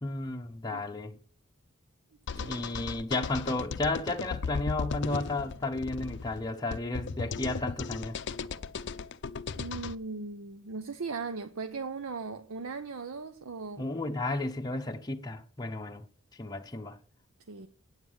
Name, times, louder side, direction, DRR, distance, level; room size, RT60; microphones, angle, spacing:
voice 1, 0.0-1.2 2.4-8.2 13.8-16.1 16.4-17.0, left 2 dB, 20° left, 0.7 m, -33 dB
sound 1, 2.3-10.0, left 5 dB, 55° left, 0.5 m, -36 dB
voice 2, 2.3-2.6 9.6-13.9 17.5-17.7, right 4 dB, 75° right, 0.7 m, -38 dB
9.0 x 8.0 x 6.3 m
head